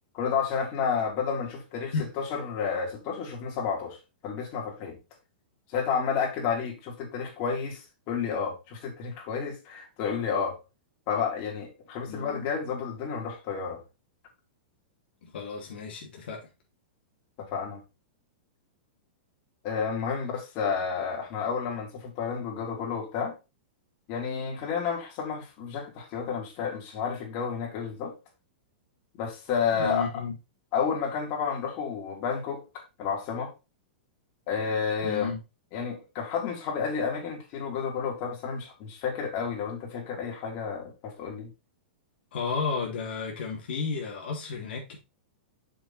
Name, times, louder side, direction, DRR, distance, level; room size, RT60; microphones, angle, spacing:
voice 1, 0.1-4.0 4.2-5.0 5.7-10.6 11.1-13.8 17.4-17.8 19.6-23.4 24.1-28.1 29.2-30.1 30.7-33.5 34.5-35.3 35.7-41.5, left 6 dB, 40° left, 3.6 m, -31 dB
voice 2, 12.1-12.4 15.2-16.5 29.7-30.3 35.0-35.4 42.3-45.0, left 4 dB, 75° left, 2.8 m, -33 dB
6.9 x 6.1 x 4.4 m
hypercardioid pair, 140°, 6 cm